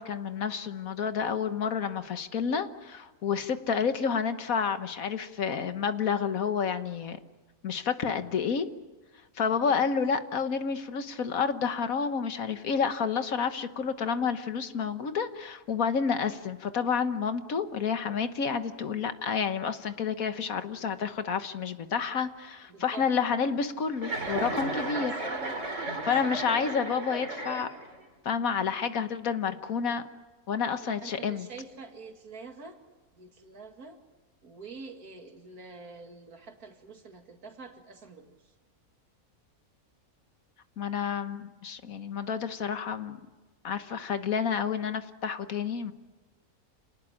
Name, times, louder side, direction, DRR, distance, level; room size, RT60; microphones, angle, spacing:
voice 1, 0.0-7.2 7.6-8.7 9.4-25.1 26.0-27.7 28.2-30.0 30.5-31.5 40.8-43.2 43.6-45.9, left 6 dB, 65° left, 10 dB, 1.6 m, -29 dB
voice 2, 22.7-23.1 24.9-25.4 25.8-26.7 30.8-32.8 33.1-34.0 34.4-38.5, right 4 dB, 75° right, 5 dB, 2.7 m, -46 dB
Chuckle chortle, 24.0-28.0, right 2 dB, 55° right, 3.4 m, -34 dB
28.0 x 19.0 x 9.9 m, 1.2 s
omnidirectional pair, 1.6 m